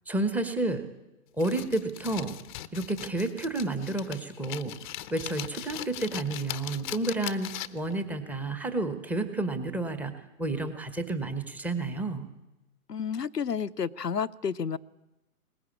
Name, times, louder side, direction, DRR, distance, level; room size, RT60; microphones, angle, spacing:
voice 1, 0.1-0.8 1.4-2.3 2.7-4.7 5.1-12.3, right 2 dB, 5° right, 9 dB, 1.1 m, -30 dB
sound 1, 1.4-7.9, left 13 dB, 30° left, 0.8 m, -40 dB
voice 2, 12.9-14.8, left 6 dB, 85° left, 14 dB, 0.9 m, -31 dB
22.0 x 19.5 x 8.7 m, 1.0 s
figure-of-eight pair, 125°, 47 cm